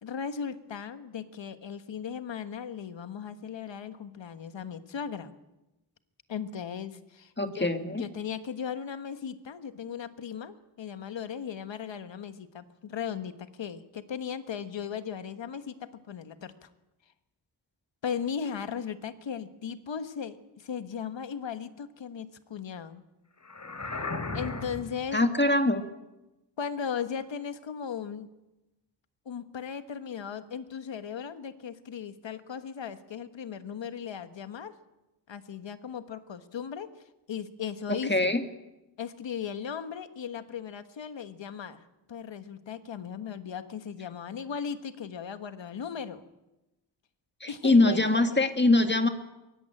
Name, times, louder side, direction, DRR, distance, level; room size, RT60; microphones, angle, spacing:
voice 1, 0.0-5.3 6.3-7.7 8.0-16.7 18.0-23.0 24.3-25.2 26.6-28.3 29.2-34.7 35.3-36.9 37.3-38.3 39.0-46.2 47.5-48.4, left 7 dB, 75° left, 10 dB, 1.4 m, -37 dB
voice 2, 7.4-8.0 25.1-25.8 38.1-38.4 47.4-49.1, left 2 dB, 25° left, 7 dB, 1.8 m, -23 dB
sound 1, 23.4-25.0, left 3 dB, 40° left, 2.9 m, -35 dB
22.5 x 17.5 x 8.9 m, 0.99 s
wide cardioid pair, 75°, 44 cm